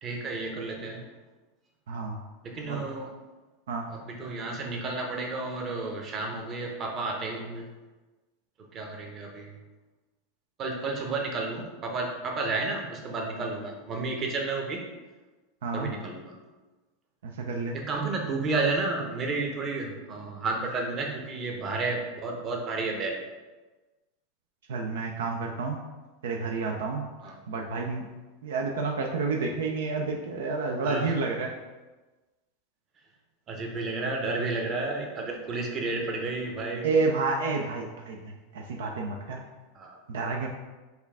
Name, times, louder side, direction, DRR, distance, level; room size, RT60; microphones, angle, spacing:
voice 1, 0.0-1.0 2.4-3.1 3.9-7.6 8.7-9.6 10.6-14.8 15.7-16.3 17.7-23.2 27.2-27.3 30.8-31.1 33.5-36.9 39.7-40.0, right 3 dB, 35° right, 1 dB, 0.8 m, -31 dB
voice 2, 1.9-2.2 2.7-2.8 3.7-3.9 15.6-15.9 17.2-17.8 24.7-25.8 26.2-28.1 28.4-31.5 36.8-39.4 40.1-40.5, right 4 dB, 80° right, 1 dB, 0.4 m, -30 dB
4.3 x 2.4 x 3.4 m, 1.2 s
hypercardioid pair, 105°, 0 cm